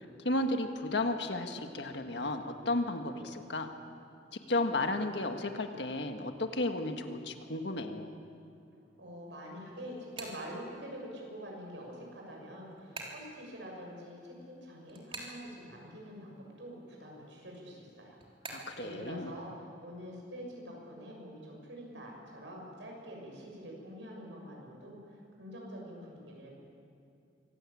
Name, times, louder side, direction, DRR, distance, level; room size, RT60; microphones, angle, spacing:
voice 1, 0.0-3.7 4.5-8.1 18.5-19.3, left 2 dB, 75° left, 5 dB, 1.7 m, -33 dB
voice 2, 9.0-18.2 18.8-26.5, equal, 85° right, -1 dB, 6.8 m, -46 dB
sound 1, 9.3-11.2 11.6-16.3 16.5-18.8, right 3 dB, 30° right, 3.6 m, -47 dB
25.0 x 17.5 x 8.7 m, 2.6 s
head